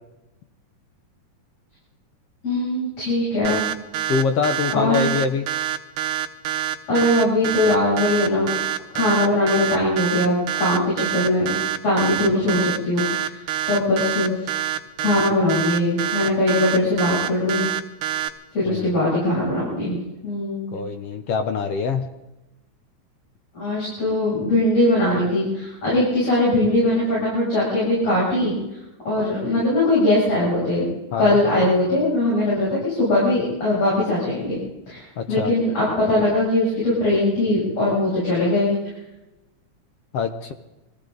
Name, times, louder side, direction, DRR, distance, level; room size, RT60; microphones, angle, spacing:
voice 1, 2.4-3.7 4.7-5.0 6.9-8.5 8.9-11.5 11.8-13.4 13.7-14.4 15.0-17.7 18.5-20.0 20.2-20.8 23.5-28.6 29.0-34.6 34.9-38.8, left 1 dB, 55° left, -8 dB, 8.4 m, -21 dB
sound 1, 3.4-18.3, right 11 dB, 80° right, 2.4 m, -26 dB
voice 2, 4.1-5.5 18.6-19.0 20.7-22.1 31.1-31.4 35.2-35.5 40.1-40.5, left 5 dB, 70° left, 7 dB, 1.5 m, -24 dB
23.5 x 15.5 x 3.9 m, 0.99 s
omnidirectional pair, 3.6 m